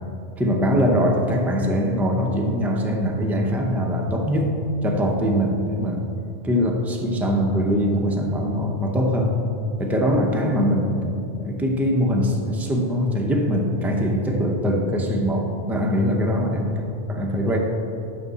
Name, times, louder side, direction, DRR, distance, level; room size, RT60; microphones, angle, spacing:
voice 1, 0.4-6.1 6.4-9.4 9.8-11.1 11.4-16.7 17.1-17.6, equal, ahead, 1 dB, 0.5 m, -22 dB
11.0 x 5.8 x 4.1 m, 2.8 s
omnidirectional pair, 1.2 m